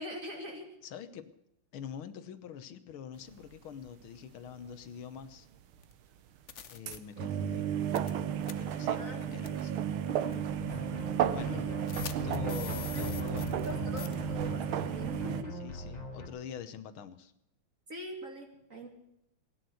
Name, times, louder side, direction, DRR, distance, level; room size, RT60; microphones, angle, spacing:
voice 1, 0.0-0.7 8.9-9.7 10.1-10.7 11.2-11.8 12.9-13.1 13.7-15.6 17.9-18.9, equal, 40° right, 2 dB, 2.6 m, -43 dB
voice 2, 0.8-1.3 1.7-5.5 6.7-7.7 8.6-9.9 11.3-11.7 12.2-13.7 15.5-17.3, left 8 dB, 80° left, 12 dB, 1.9 m, -45 dB
sound 1, 3.6-3.7 3.9-4.2 4.5-4.6 4.7-4.8 6.6-15.4, right 9 dB, 80° right, 1.7 m, -33 dB
sound 2, 5.8-5.9 6.5-7.0 8.0-8.2 8.4-8.5 9.4-9.6 10.3-10.4 11.9-13.7 14.0-14.1, left 7 dB, 50° left, 0.9 m, -43 dB
sound 3, 10.6-16.3, left 1 dB, 30° left, 3.5 m, -41 dB
17.0 x 9.9 x 7.8 m, 0.82 s
omnidirectional pair, 2.3 m